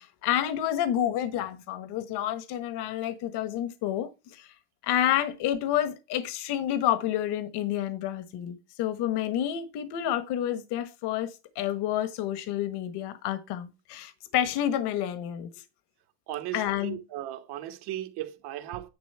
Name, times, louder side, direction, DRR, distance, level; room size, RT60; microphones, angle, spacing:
voice 1, 0.0-4.5 4.8-15.5 16.5-17.0, left 11 dB, 70° left, 1.4 m, -29 dB
voice 2, 16.3-18.9, right 13 dB, 65° right, 1.6 m, -36 dB
10.5 x 4.0 x 6.8 m
cardioid pair, 145°, 43 cm